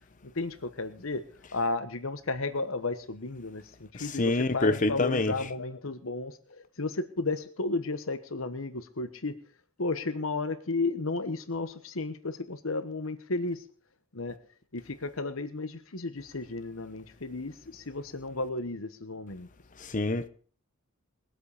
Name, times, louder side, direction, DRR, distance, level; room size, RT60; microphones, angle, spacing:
voice 1, 0.2-1.2 1.5-9.4 9.8-13.6 14.1-14.4 14.7-19.5, left 3 dB, 75° left, 1.2 m, -33 dB
voice 2, 4.2-5.3 19.9-20.3, left 2 dB, 40° left, 0.9 m, -26 dB
21.5 x 8.1 x 4.9 m
head